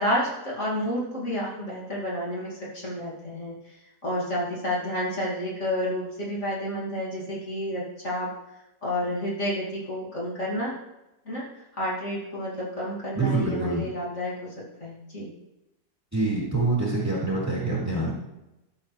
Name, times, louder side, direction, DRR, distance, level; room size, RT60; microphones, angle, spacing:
voice 1, 0.0-3.5 4.0-8.3 8.8-10.7 11.2-11.4 11.7-14.5 14.8-15.3, equal, 45° left, -6 dB, 2.9 m, -30 dB
voice 2, 13.1-13.9 16.1-18.1, right 2 dB, 10° right, -5 dB, 3.1 m, -25 dB
13.5 x 7.7 x 3.4 m, 0.94 s
omnidirectional pair, 1.8 m